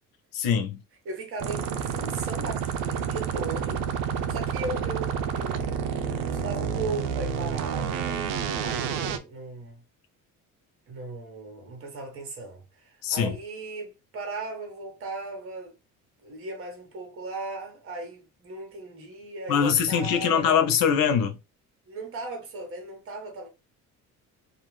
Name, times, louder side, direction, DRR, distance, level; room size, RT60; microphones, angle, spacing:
voice 1, 0.3-0.8 13.0-13.3 19.5-21.4, left 7 dB, 85° left, 0.7 m, -23 dB
voice 2, 1.0-5.7 6.0-9.8 10.9-15.7 16.2-20.5 21.9-23.5, right 3 dB, 40° right, 1.1 m, -37 dB
sound 1, 1.4-9.2, right 7 dB, 85° right, 0.5 m, -29 dB
2.4 x 2.4 x 3.1 m
cardioid pair, 135°, 33 cm